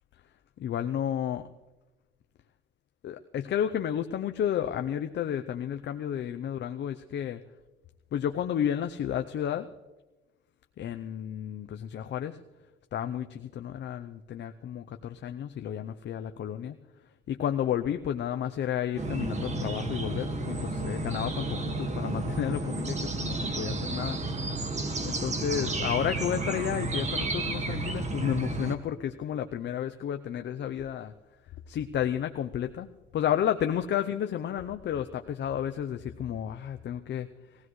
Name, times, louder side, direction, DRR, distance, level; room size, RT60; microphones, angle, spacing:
voice 1, 0.6-1.5 3.0-7.4 8.1-9.7 10.8-12.4 12.9-16.8 17.3-24.2 25.0-31.1 31.7-32.9 33.1-37.3, left 9 dB, 65° left, 7 dB, 0.6 m, -31 dB
sound 1, 19.0-28.7, right 2 dB, 35° right, 1.8 m, -32 dB
20.5 x 16.0 x 3.2 m, 1.1 s
cardioid pair, 90°, 20 cm